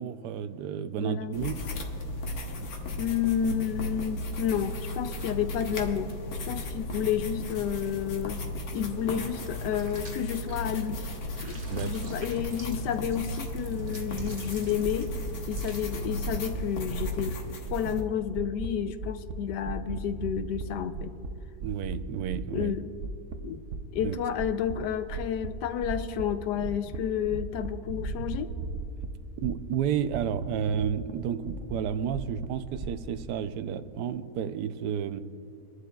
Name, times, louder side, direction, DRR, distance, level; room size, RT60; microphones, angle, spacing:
voice 1, 0.0-1.6 11.6-12.1 21.6-22.7 24.0-24.2 29.4-35.2, right 8 dB, 80° right, 12 dB, 1.2 m, -31 dB
voice 2, 1.0-1.4 3.0-6.1 6.5-8.4 8.7-11.1 11.4-15.1 15.5-17.4 17.7-21.1 22.5-22.9 23.4-23.6 23.9-28.5, left 9 dB, 80° left, 11 dB, 1.2 m, -30 dB
sound 1, 1.3-18.0, left 1 dB, 60° left, 1.5 m, -35 dB
sound 2, 9.0-10.9 11.2-16.2, right 2 dB, 30° right, 1.2 m, -50 dB
sound 3, 13.8-13.9 14.2-14.5 14.8-15.2 15.5-15.9 16.2-16.6 16.9-17.3 17.6-18.0 18.3-18.7 19.0-19.3 19.6-20.7 20.9-21.3 21.6-22.0 22.2-22.7 23.0-24.1 24.4-24.7 25.1-25.5 25.8-26.2 26.5-27.0 27.2-29.1 29.4-29.8 30.0-31.1 31.5-32.9, right 4 dB, 55° right, 0.9 m, -36 dB
25.0 x 11.5 x 2.3 m, 2.5 s
omnidirectional pair, 1.8 m